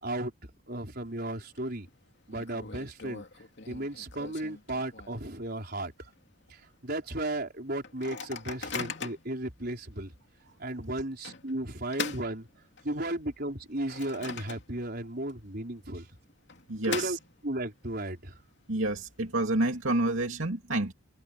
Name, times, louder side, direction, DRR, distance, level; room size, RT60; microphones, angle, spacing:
voice 1, 0.7-1.9 2.3-3.2 3.7-6.1 6.5-10.1 10.6-12.5 12.8-16.1 16.9-17.2 17.4-18.4, right 1 dB, 50° right, 5.1 m, -35 dB
Microwave oven, 1.1-1.6 1.9-2.0 2.3-5.4 5.8-5.9 6.2-6.5 7.0-7.1 7.8-9.4 10.0-10.1 11.2-13.1 13.5-15.0 15.3-15.4 16.3-17.7, left 5 dB, 55° left, 3.1 m, -41 dB
voice 2, 16.7-17.2 18.7-20.9, right 2 dB, 70° right, 2.8 m, -29 dB
head